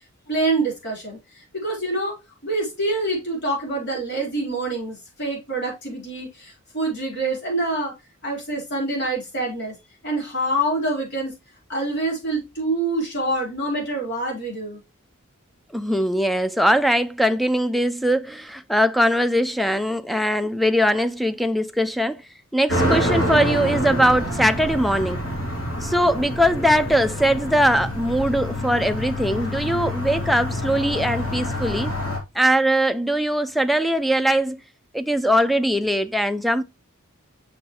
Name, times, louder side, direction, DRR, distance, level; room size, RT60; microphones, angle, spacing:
voice 1, 0.3-2.1 2.4-7.9 8.2-9.7 10.0-11.3 11.7-14.8, right 2 dB, 55° left, 4.4 m, -26 dB
voice 2, 15.7-22.2 22.5-25.2 25.8-31.9 32.3-34.6 34.9-36.6, equal, ahead, 0.3 m, -21 dB
sound 1, 22.7-32.2, equal, 75° left, 3.0 m, -27 dB
6.3 x 5.8 x 3.1 m
head